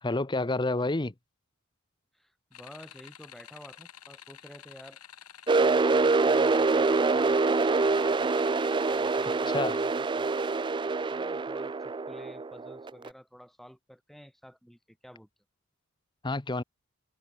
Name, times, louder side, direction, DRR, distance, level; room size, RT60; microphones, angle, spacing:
voice 1, 0.0-1.1 9.5-9.7 16.2-16.6, left 2 dB, 20° left, 0.8 m, -29 dB
voice 2, 2.1-5.0 5.6-8.3 8.9-10.4 11.1-15.3, equal, ahead, 2.9 m, -51 dB
sound 1, 2.5-9.9, left 10 dB, 85° left, 2.6 m, -51 dB
sound 2, 5.5-13.1, right 3 dB, 20° right, 0.3 m, -25 dB
head